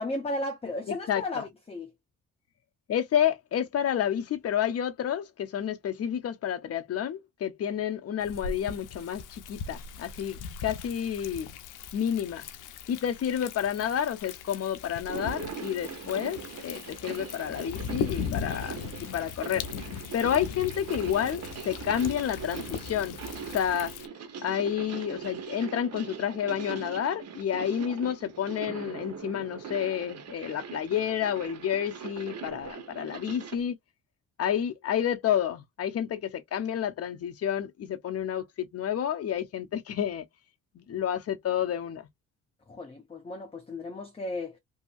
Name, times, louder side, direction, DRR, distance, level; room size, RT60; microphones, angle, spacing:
voice 1, 0.0-1.9 42.7-44.6, left 2 dB, 20° left, 0.7 m, -34 dB
voice 2, 0.9-1.4 2.9-11.5 11.9-12.5 12.9-19.6 20.1-23.2 23.5-23.9 24.4-33.8 34.4-40.2 40.7-42.1, left 9 dB, 50° left, 0.7 m, -30 dB
Thunder, 8.2-24.1, left 7 dB, 90° left, 0.6 m, -39 dB
sound 1, 15.0-33.6, right 6 dB, 55° right, 0.9 m, -41 dB
2.7 x 2.7 x 2.4 m
cardioid pair, 90°, 30 cm